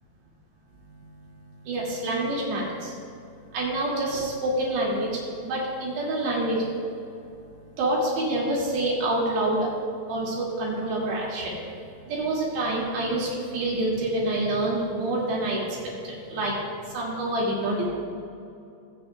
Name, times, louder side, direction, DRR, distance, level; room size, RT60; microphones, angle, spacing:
voice 1, 1.7-2.9 3.5-6.7 7.8-9.7 10.1-11.5 12.1-15.6 16.0-16.5 16.9-17.9, right 1 dB, 60° right, -5 dB, 4.3 m, -27 dB
19.5 x 8.6 x 2.3 m, 2.6 s
omnidirectional pair, 5.8 m